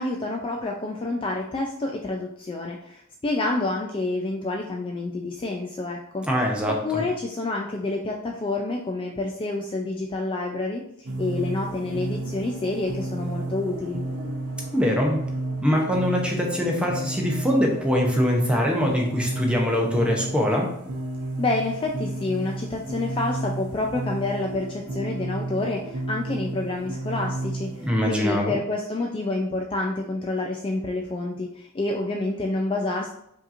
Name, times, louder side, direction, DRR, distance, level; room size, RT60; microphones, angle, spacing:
voice 1, 0.0-6.3 6.7-10.8 11.2-14.0 21.4-33.1, left 2 dB, 25° left, 1 dB, 0.3 m, -28 dB
voice 2, 6.2-7.0 14.7-15.2 15.6-20.7 27.8-28.5, equal, 5° right, 0 dB, 0.7 m, -23 dB
sound 1, 11.1-27.9, right 2 dB, 55° right, 0.5 m, -32 dB
5.1 x 2.8 x 2.6 m, 0.75 s
head